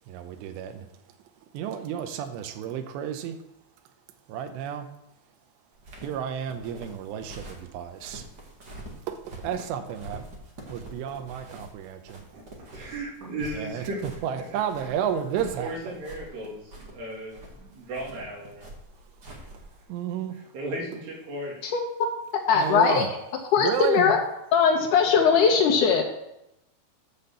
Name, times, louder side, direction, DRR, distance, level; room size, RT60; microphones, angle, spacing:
voice 1, 0.1-0.7 1.5-3.4 4.3-4.9 6.0-7.4 7.7-8.2 9.1-9.2 9.4-10.2 10.7-12.0 13.5-13.9 14.2-15.9 19.9-20.3 22.6-23.1 23.6-24.1, right 9 dB, 90° right, 7 dB, 2.9 m, -31 dB
sound 1, 5.7-19.8, right 1 dB, 55° right, 1.1 m, -45 dB
voice 2, 12.3-14.0 14.4-14.5 14.8-14.9 15.3-18.6 19.3-19.6 20.3-21.6, right 1 dB, 75° right, -4 dB, 4.8 m, -36 dB
voice 3, 22.5-23.1 23.5-24.2 24.5-26.0, left 6 dB, 80° left, 2 dB, 1.8 m, -20 dB
11.5 x 4.2 x 6.8 m, 0.87 s
omnidirectional pair, 4.9 m